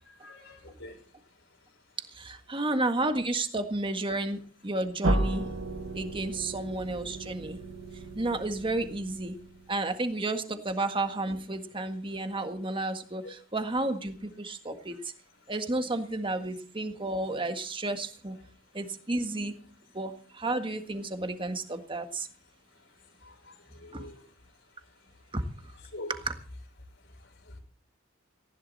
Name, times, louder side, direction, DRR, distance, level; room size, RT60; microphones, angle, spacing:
voice 1, 0.2-0.9 23.3-24.2 25.9-26.1, left 2 dB, 75° left, 0 dB, 5.8 m, -44 dB
voice 2, 2.1-5.5 5.9-7.6 8.2-9.4 9.7-15.1 15.5-18.4 18.7-19.5 19.9-22.3 23.9-24.1 25.3-25.4 26.1-26.3, right 2 dB, 25° right, 7 dB, 1.7 m, -32 dB
sound 1, 5.0-9.8, right 1 dB, 85° right, 1.8 m, -33 dB
19.0 x 15.0 x 4.2 m, 0.42 s
head